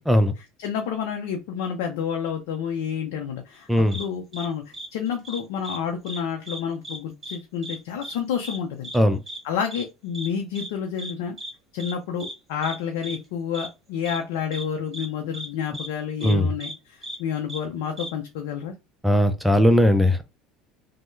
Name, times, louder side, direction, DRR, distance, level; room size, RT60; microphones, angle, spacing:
voice 1, 0.6-3.7 3.9-4.6 4.9-8.9 9.4-11.4 11.7-18.7, left 7 dB, 80° left, 0.5 m, -29 dB
sound 1, 3.9-4.0 4.3-4.5 4.7-4.9 5.2-5.8 6.0-6.2 6.4-7.0 7.2-7.4 7.6-7.8 8.0-8.1 8.4-8.6 8.8-9.0 9.3-9.4 9.7-9.8 10.1-10.3 10.6-10.7 11.0-11.1 11.4-11.5 11.8-11.9 12.2-12.3 12.6-12.8 13.0-13.2 13.5-13.7 14.1-14.2 14.5-14.6 14.9-15.1 15.3-15.5 15.7-15.9 16.2-16.3 16.6-16.7 17.0-17.2 17.5-17.6 18.0-18.1, right 1 dB, 25° right, 1.1 m, -36 dB
voice 2, 19.0-20.2, equal, 5° right, 0.4 m, -18 dB
3.1 x 2.0 x 3.0 m
supercardioid pair, 90°, 0 cm